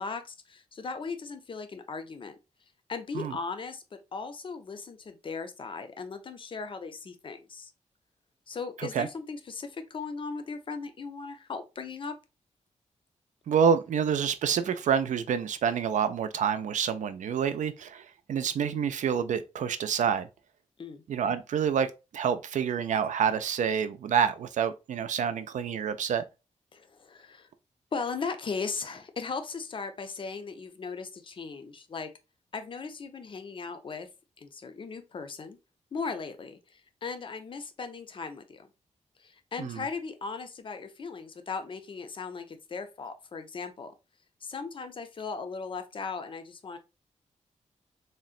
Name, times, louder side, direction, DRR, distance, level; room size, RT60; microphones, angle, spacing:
voice 1, 0.0-2.4 2.9-3.8 4.1-7.7 8.5-12.1 20.8-21.0 26.7-27.5 27.9-32.1 32.5-34.1 34.4-35.6 35.9-38.7 39.2-43.9 44.4-46.8, left 4 dB, 40° left, 0.5 m, -37 dB
voice 2, 13.5-20.3 21.1-26.2 39.6-39.8, right 7 dB, 75° right, 0.4 m, -28 dB
3.8 x 2.1 x 2.4 m
wide cardioid pair, 120°, 13 cm